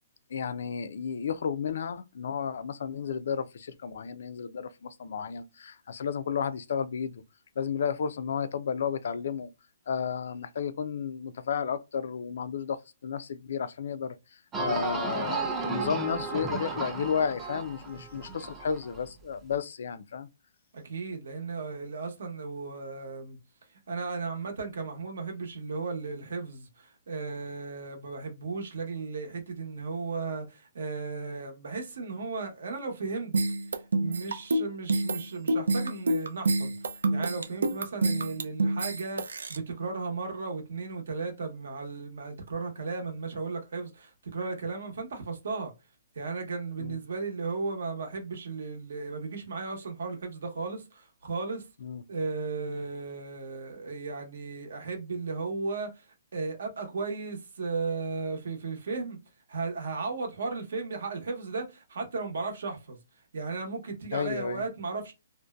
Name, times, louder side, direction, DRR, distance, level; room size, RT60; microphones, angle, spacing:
voice 1, 0.3-7.2 7.6-9.5 9.9-14.1 14.6-20.3 46.8-47.0 51.8-52.0 64.1-64.6, left 7 dB, 65° left, 0.3 m, -32 dB
sound 1, 14.5-19.0 19.5-19.6, right 3 dB, 15° right, 0.4 m, -34 dB
voice 2, 20.7-23.4 23.9-33.3 34.0-45.7 46.1-51.7 52.1-59.2 59.5-63.0 63.3-65.1, right 4 dB, 70° right, 0.8 m, -35 dB
sound 2, 33.3-39.6, right 2 dB, 90° right, 0.4 m, -27 dB
2.6 x 2.1 x 2.3 m
hypercardioid pair, 155°, 0 cm